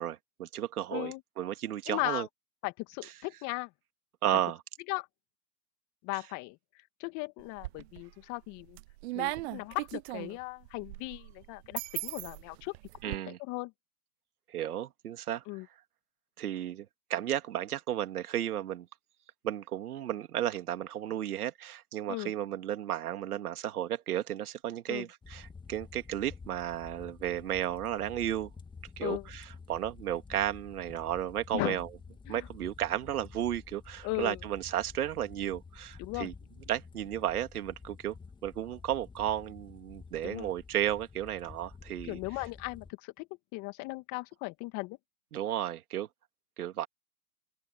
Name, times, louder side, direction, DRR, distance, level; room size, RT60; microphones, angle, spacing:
voice 1, 0.0-2.3 3.0-3.1 4.2-4.6 13.0-13.4 14.5-15.4 16.4-18.9 19.4-28.5 29.0-31.9 32.3-36.3 36.7-38.2 38.4-42.2 45.3-46.1 46.6-46.9, right 11 dB, 75° right, 2.5 m, -33 dB
voice 2, 0.9-1.2 1.9-2.3 2.6-3.7 4.9-5.1 6.0-6.6 7.0-8.8 9.1-12.7 13.1-13.7 15.5-15.7 22.1-22.3 24.9-25.1 29.0-29.3 31.5-31.8 32.3-32.5 34.0-34.4 36.0-36.3 40.2-40.5 42.1-45.0, left 24 dB, 40° left, 2.0 m, -37 dB
sound 1, 7.4-8.1 8.5-13.2, right 20 dB, 45° right, 0.6 m, -38 dB
sound 2, 25.2-42.9, left 4 dB, 10° left, 2.4 m, -50 dB
open air
hypercardioid pair, 125°, 44 cm